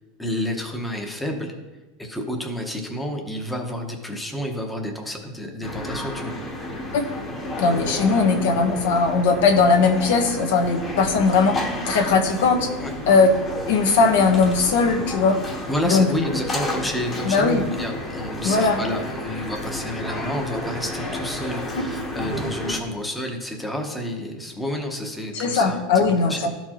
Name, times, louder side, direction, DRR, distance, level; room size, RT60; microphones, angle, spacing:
voice 1, 0.2-1.5 2.0-6.4 12.8-12.9 15.7-26.5, left 1 dB, 5° left, 2 dB, 0.8 m, -30 dB
sound 1, 5.6-22.8, left 1 dB, 20° left, 1.1 m, -31 dB
voice 2, 7.6-11.6 11.9-12.7 13.1-13.3 13.7-15.4 15.8-16.1 17.2-17.6 18.4-18.8 25.3-26.5, left 4 dB, 75° left, 5 dB, 1.0 m, -19 dB
12.5 x 4.4 x 2.9 m, 1.2 s
supercardioid pair, 155°, 0 cm